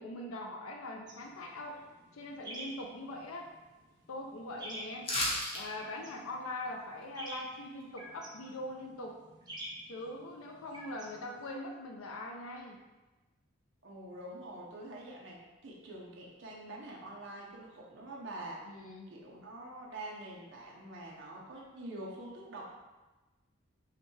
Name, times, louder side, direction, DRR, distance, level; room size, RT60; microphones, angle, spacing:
voice 1, 0.0-1.8 2.1-3.5 4.1-5.1 5.5-9.2 9.9-12.8 18.7-19.1, left 1 dB, 80° left, 1 dB, 0.5 m, -42 dB
sound 1, 1.1-11.5, right 1 dB, 20° right, 0.6 m, -50 dB
sound 2, 5.0-5.6 6.0-6.1, left 1 dB, 25° left, 0.8 m, -32 dB
voice 2, 13.8-18.7 19.1-22.7, right 1 dB, 60° right, -3 dB, 0.7 m, -46 dB
5.6 x 2.3 x 3.1 m, 1.1 s
head